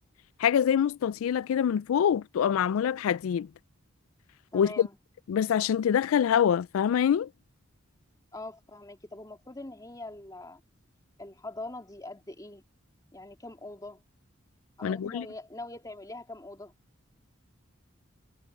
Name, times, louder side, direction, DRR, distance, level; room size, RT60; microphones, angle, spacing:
voice 1, 0.4-3.5 4.5-4.9 5.3-7.3 14.8-15.3, left 8 dB, 85° left, 0.3 m, -25 dB
voice 2, 4.5-5.0 8.3-10.6 11.2-12.6 13.1-14.0 14.8-16.7, left 2 dB, 20° left, 2.4 m, -43 dB
head